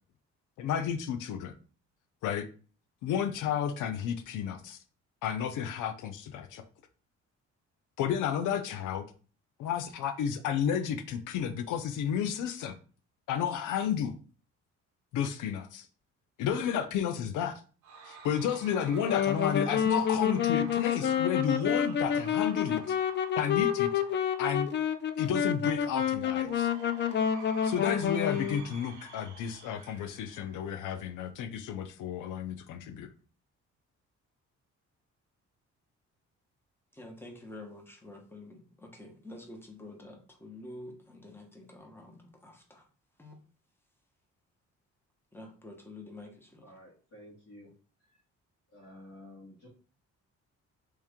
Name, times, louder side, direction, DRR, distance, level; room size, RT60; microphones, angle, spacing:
voice 1, 0.6-1.5 2.2-2.5 3.0-4.8 5.2-6.6 8.0-9.0 9.6-12.7 13.3-14.1 15.1-15.9 16.4-17.6 18.1-23.0 23.4-23.9 24.4-24.7 25.2-26.7 27.6-33.1, left 8 dB, 85° left, 8 dB, 0.6 m, -32 dB
Cheering / Crowd, 17.8-25.1 26.4-31.1, right 4 dB, 75° right, 1.0 m, -50 dB
Wind instrument woodwind instrument, 19.0-28.7, left 8 dB, 40° left, 0.4 m, -29 dB
voice 2, 36.9-42.9 43.2-43.3 45.3-46.7, left 2 dB, 5° left, 2 dB, 1.1 m, -48 dB
voice 3, 46.6-47.7 48.7-49.7, left 1 dB, 60° left, -8 dB, 1.9 m, -51 dB
3.2 x 3.1 x 3.6 m, 0.39 s
cardioid pair, 90°, 30 cm